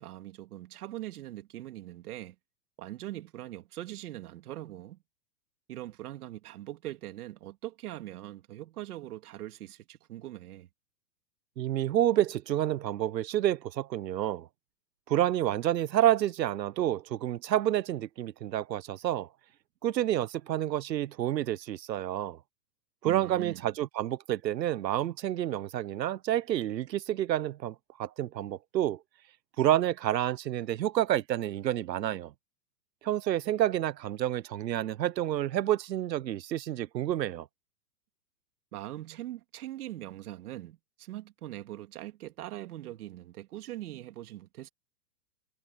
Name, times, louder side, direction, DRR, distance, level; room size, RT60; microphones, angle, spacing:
voice 1, 0.0-2.4 2.8-5.0 5.7-10.7 23.0-23.6 38.7-44.7, right 14 dB, 65° right, 2.5 m, -42 dB
voice 2, 11.6-14.5 15.1-19.3 19.8-22.4 23.0-29.0 29.6-32.3 33.0-37.5, right 12 dB, 90° right, 1.0 m, -29 dB
hypercardioid pair, 145°, 49 cm